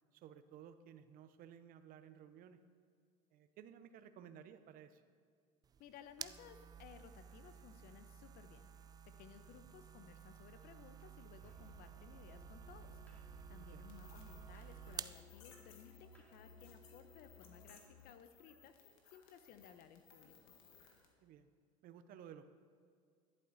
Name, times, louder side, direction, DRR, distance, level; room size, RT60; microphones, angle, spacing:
voice 1, 0.1-2.6 3.3-5.0 13.7-13.9 21.2-21.5 21.8-22.4, right 9 dB, 55° right, 11 dB, 0.8 m, -56 dB
sound 1, 5.6-15.2, right 8 dB, 20° right, 0.3 m, -53 dB
voice 2, 5.8-8.7 9.0-13.0 13.5-18.8 19.1-20.5, left 8 dB, 60° left, 10 dB, 0.9 m, -59 dB
Musical instrument, 11.4-18.2, left 4 dB, 10° left, 2.4 m, -60 dB
sound 2, 13.9-21.1, left 6 dB, 80° left, 1.7 m, -64 dB
11.0 x 11.0 x 4.0 m, 2.2 s
supercardioid pair, 105°, 18 cm